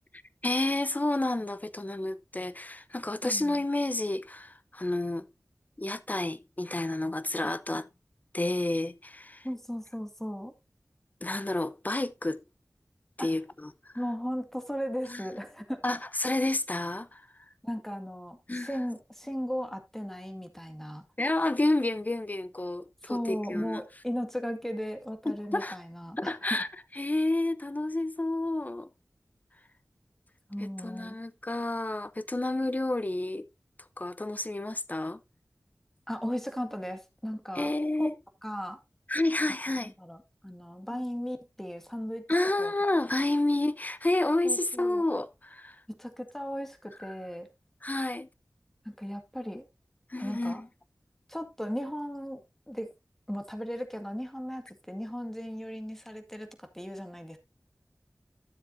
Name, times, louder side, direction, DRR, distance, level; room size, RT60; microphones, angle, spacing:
voice 1, 0.4-5.3 5.8-7.9 8.3-9.5 11.2-12.4 13.2-13.9 15.1-15.2 15.8-17.3 18.5-18.8 21.2-23.8 25.2-25.8 26.2-26.7 26.9-28.9 30.6-33.5 34.0-35.2 37.5-38.1 39.1-39.9 40.9-41.0 42.3-45.8 47.8-48.3 50.1-50.7, left 2 dB, 30° left, 0.7 m, -30 dB
voice 2, 3.2-3.6 9.4-10.5 13.2-13.3 13.9-15.8 17.6-21.0 23.0-26.6 30.5-31.2 36.1-37.7 38.0-38.1 38.4-38.8 40.0-42.3 42.6-42.7 44.4-45.0 45.9-47.5 48.9-49.7 50.2-50.6 51.3-52.4 52.7-52.9 53.3-57.4, equal, 5° left, 2.0 m, -36 dB
13.0 x 7.3 x 2.7 m
wide cardioid pair, 55°, 6 cm